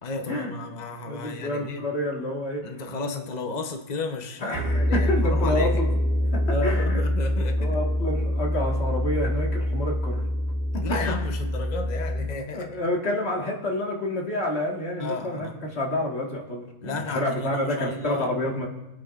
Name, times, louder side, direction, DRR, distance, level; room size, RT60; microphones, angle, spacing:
voice 1, 0.0-1.9 2.6-5.8 6.5-7.8 10.7-12.7 15.0-15.6 16.8-18.3, left 3 dB, 65° left, 4 dB, 0.4 m, -33 dB
voice 2, 1.0-2.7 4.4-5.9 6.3-7.0 7.6-10.2 10.7-10.8 12.5-18.7, left 1 dB, 35° left, -1 dB, 1.8 m, -28 dB
sound 1, 4.5-12.2, equal, 40° right, 2.4 m, -25 dB
25.0 x 8.7 x 2.5 m, 0.99 s
omnidirectional pair, 2.2 m